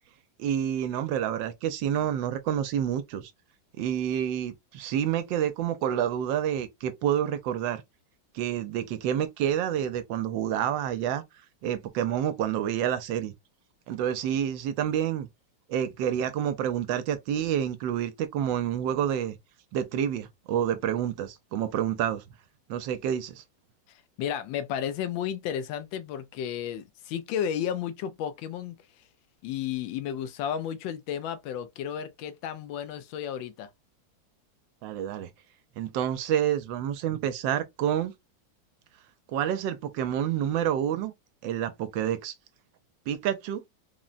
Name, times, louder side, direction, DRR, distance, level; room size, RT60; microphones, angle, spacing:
voice 1, 0.4-3.3 3.8-7.8 8.3-11.2 11.6-13.3 13.9-15.3 15.7-19.4 19.7-22.2 22.7-23.4 34.8-35.3 35.8-38.1 39.3-41.1 41.4-42.3 43.1-43.6, right 10 dB, 75° right, 1.2 m, -28 dB
voice 2, 24.2-28.8 29.4-33.7, left 9 dB, 80° left, 1.3 m, -33 dB
3.8 x 2.1 x 2.4 m
omnidirectional pair, 2.1 m